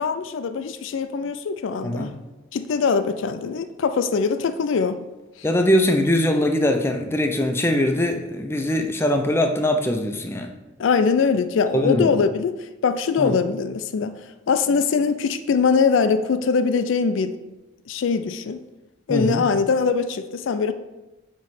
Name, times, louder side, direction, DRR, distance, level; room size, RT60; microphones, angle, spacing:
voice 1, 0.0-2.1 2.5-5.0 10.8-17.4 17.9-18.6 19.1-20.7, left 5 dB, 80° left, 0.4 m, -22 dB
voice 2, 5.4-10.5 11.7-12.1 13.2-13.3 19.1-19.4, left 1 dB, 10° left, 0.5 m, -21 dB
8.8 x 3.1 x 4.1 m
head